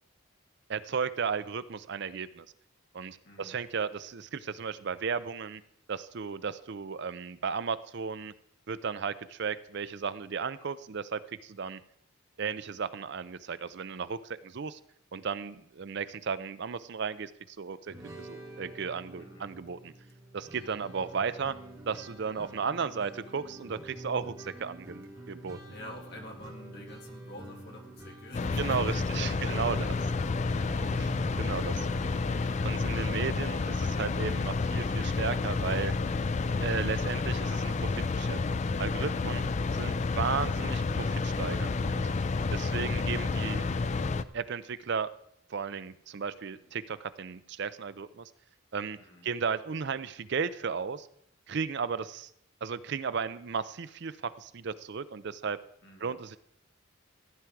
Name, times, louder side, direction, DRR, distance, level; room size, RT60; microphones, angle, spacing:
voice 1, 0.7-2.5 2.9-5.6 5.9-8.3 8.7-11.8 12.4-14.8 15.1-19.9 20.3-21.5 21.9-25.6 28.6-29.8 31.0-31.1 31.4-31.9 32.6-35.9 36.6-38.4 38.8-39.4 39.7-42.1 42.5-43.7 44.3-45.1 45.5-48.3 48.7-49.0 49.2-51.1 51.5-52.3 52.6-55.6 56.0-56.4, right 6 dB, 50° right, 14 dB, 0.5 m, -34 dB
voice 2, 3.2-3.6 19.2-19.5 25.2-25.3 25.7-30.7 32.4-33.3 46.5-46.8 49.0-49.3 55.8-56.2, left 1 dB, 50° left, 1 dB, 2.2 m, -49 dB
sound 1, 17.9-33.5, right 1 dB, 15° right, 1.6 m, -46 dB
sound 2, 28.3-44.2, left 4 dB, 30° left, 0.4 m, -30 dB
15.0 x 9.1 x 4.6 m, 0.71 s
head